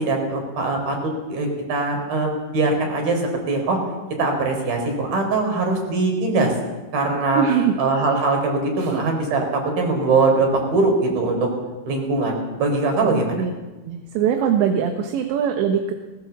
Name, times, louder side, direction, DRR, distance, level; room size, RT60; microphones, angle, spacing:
voice 1, 0.0-3.8 4.2-6.5 6.9-7.4 7.8-11.5 11.9-13.3, right 3 dB, 55° right, 3 dB, 6.1 m, -21 dB
voice 2, 7.4-7.8 8.8-9.0 13.0-13.1 13.4-13.5 13.9-15.9, right 8 dB, 75° right, 5 dB, 3.4 m, -21 dB
19.5 x 19.5 x 7.3 m, 1.2 s
omnidirectional pair, 5.3 m